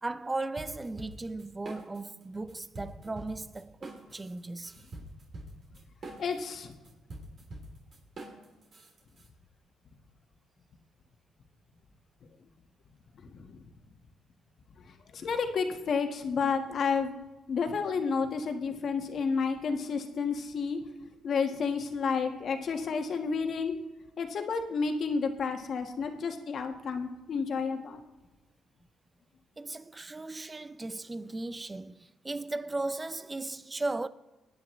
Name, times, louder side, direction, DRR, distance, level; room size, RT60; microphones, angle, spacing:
voice 1, 0.0-4.7 29.6-34.1, right 2 dB, 20° right, 0.6 m, -36 dB
sound 1, 0.6-2.2 2.5-9.3, right 1 dB, 50° right, 3.4 m, -45 dB
voice 2, 6.2-6.8 13.2-13.7 14.9-17.2 17.5-23.7 24.2-28.0, left 5 dB, 60° left, 1.5 m, -31 dB
24.0 x 9.8 x 3.2 m
cardioid pair, 90°, 0 cm